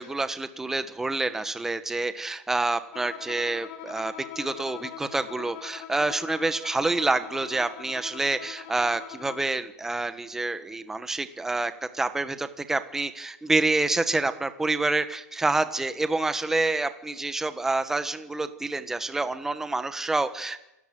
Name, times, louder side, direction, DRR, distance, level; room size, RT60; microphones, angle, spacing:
voice 1, 0.0-20.6, right 2 dB, 5° right, 10 dB, 1.2 m, -27 dB
Bowed string instrument, 2.9-9.6, left 11 dB, 40° left, 3.2 m, -42 dB
27.5 x 17.5 x 7.7 m, 0.93 s
hypercardioid pair, 165°, 10 cm